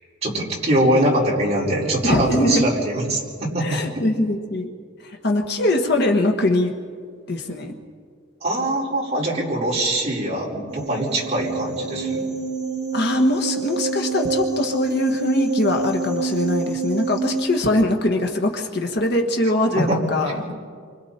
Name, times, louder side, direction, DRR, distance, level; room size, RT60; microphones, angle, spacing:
voice 1, 0.2-3.8 8.4-12.2 19.7-20.0, right 1 dB, 30° right, -5 dB, 5.1 m, -22 dB
voice 2, 2.0-2.7 3.6-4.7 5.0-6.7 7.3-7.8 12.9-20.5, left 1 dB, 55° left, 3 dB, 1.4 m, -22 dB
sound 1, 10.7-17.5, right 4 dB, 55° right, 6.6 m, -27 dB
29.5 x 25.0 x 4.4 m, 2.1 s
head